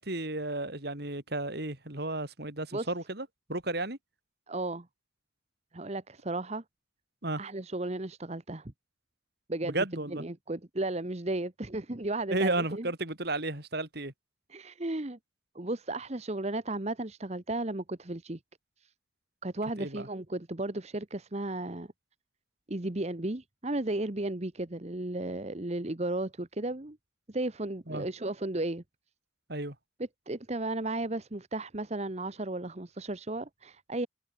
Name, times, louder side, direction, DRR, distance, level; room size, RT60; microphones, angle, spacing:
voice 1, 0.0-4.0 7.2-7.4 9.6-10.2 12.3-14.1 19.8-20.1 27.9-28.1 29.5-29.8, right 2 dB, 55° right, 3.9 m, -33 dB
voice 2, 4.5-4.9 5.7-6.6 7.4-8.7 9.5-9.8 10.1-12.9 14.5-15.2 15.5-18.4 19.4-21.9 22.7-27.0 27.3-28.8 30.3-34.1, right 2 dB, 35° right, 1.1 m, -34 dB
head